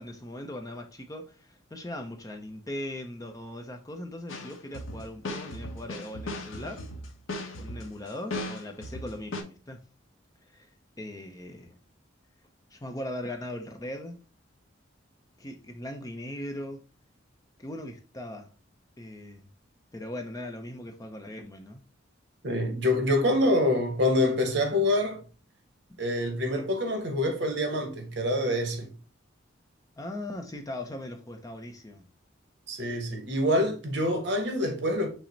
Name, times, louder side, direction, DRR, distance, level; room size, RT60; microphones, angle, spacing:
voice 1, 0.0-6.8 7.6-9.8 10.5-10.7 11.0-11.8 12.7-14.2 15.4-16.8 17.6-18.5 19.0-19.5 19.9-21.8 30.0-32.0, left 1 dB, 20° left, 0.5 m, -39 dB
sound 1, 4.3-9.4, left 1 dB, 90° left, 0.8 m, -37 dB
voice 2, 22.4-25.2 26.0-28.9 32.7-35.1, left 1 dB, 60° right, 1.0 m, -26 dB
5.7 x 2.1 x 3.9 m
head